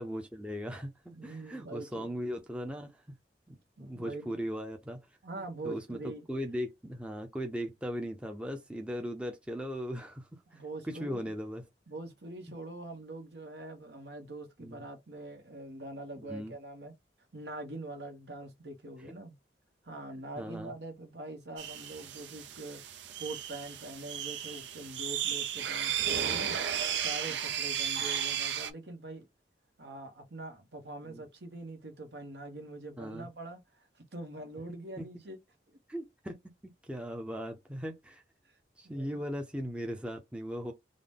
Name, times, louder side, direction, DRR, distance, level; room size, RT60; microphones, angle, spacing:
voice 1, 0.0-3.0 3.5-5.1 5.4-11.6 14.6-14.9 16.2-16.5 20.4-20.7 26.3-26.5 27.3-27.4 31.0-31.2 33.0-33.3 35.0-35.1 35.9-36.4 36.8-38.2 38.8-40.7, equal, 5° right, 0.5 m, -38 dB
voice 2, 1.1-2.1 3.8-4.4 5.2-6.3 10.5-11.3 11.9-16.9 17.3-19.4 19.8-22.8 23.2-26.6 27.0-29.3 29.8-35.4 35.7-35.8 38.8-39.2, right 2 dB, 70° right, 1.1 m, -44 dB
sound 1, 21.6-28.7, right 9 dB, 90° right, 0.5 m, -34 dB
3.8 x 2.1 x 3.5 m
head